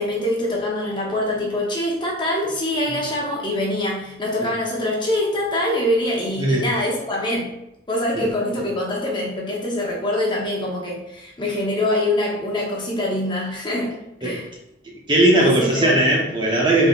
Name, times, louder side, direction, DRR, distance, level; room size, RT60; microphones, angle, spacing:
voice 1, 0.0-7.5 7.9-14.5 15.4-16.0, left 1 dB, 25° left, -2 dB, 0.7 m, -24 dB
voice 2, 15.1-16.9, right 1 dB, 25° right, -2 dB, 0.8 m, -18 dB
4.0 x 3.7 x 2.4 m, 0.89 s
head